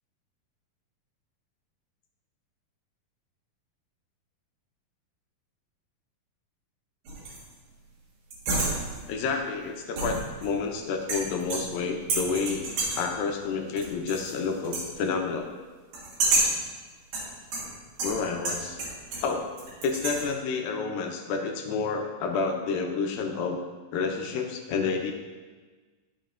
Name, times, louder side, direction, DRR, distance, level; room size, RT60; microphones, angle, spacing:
sound 1, 7.1-7.5 8.3-9.2 10.0-10.7 11.1-11.8 12.1-13.1 13.8-14.4 14.6-14.9 15.9-16.7 17.1-19.3 19.6-20.3, right 2 dB, 60° right, 2.6 m, -30 dB
voice 1, 9.1-12.7 13.0-15.5 18.0-18.9 19.2-19.5 19.8-23.6 23.9-25.1, left 5 dB, 85° left, 2 dB, 2.6 m, -29 dB
11.5 x 6.5 x 2.5 m, 1.3 s
omnidirectional pair, 4.1 m